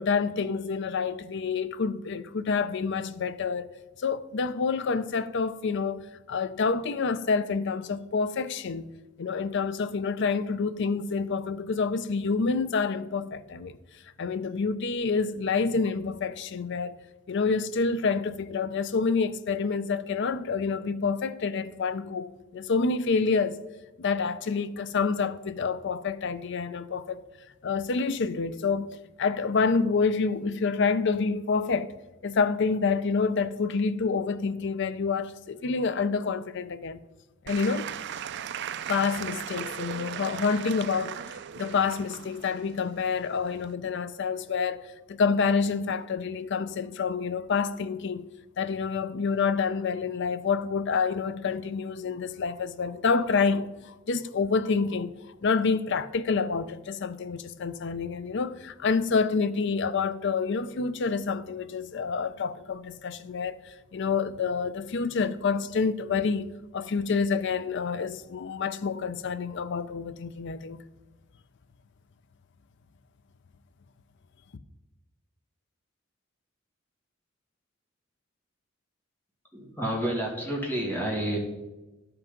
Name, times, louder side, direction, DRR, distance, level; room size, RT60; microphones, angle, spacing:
voice 1, 0.0-3.7 4.0-6.0 6.3-8.9 9.2-13.8 14.2-16.9 17.3-23.6 24.0-27.2 27.6-31.9 32.2-37.0 37.4-37.9 38.9-44.8 45.1-48.3 48.6-53.7 54.1-55.1 55.4-70.8, left 5 dB, 60° left, 0.5 m, -28 dB
Applause / Crowd, 37.5-43.8, right 9 dB, 60° right, 0.4 m, -38 dB
voice 2, 79.5-81.4, right 1 dB, 10° left, 2.0 m, -29 dB
11.5 x 5.9 x 5.1 m
head